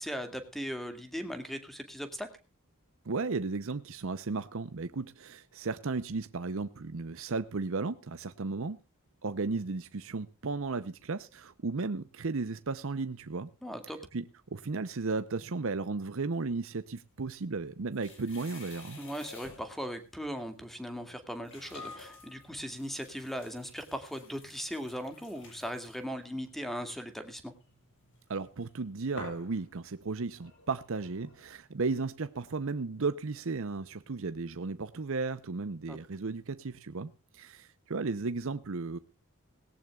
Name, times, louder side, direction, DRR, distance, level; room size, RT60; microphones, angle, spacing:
voice 1, 0.0-2.3 13.6-14.0 19.0-27.5 35.9-36.0, equal, ahead, 2.1 m, -38 dB
voice 2, 3.0-8.8 9.2-13.5 14.1-14.2 14.5-19.0 28.3-39.0, right 4 dB, 65° right, 0.7 m, -34 dB
sound 1, 17.3-19.9 20.7-20.8 21.4-28.7 29.2-31.6, left 2 dB, 60° left, 7.7 m, -50 dB
18.5 x 17.5 x 2.4 m
head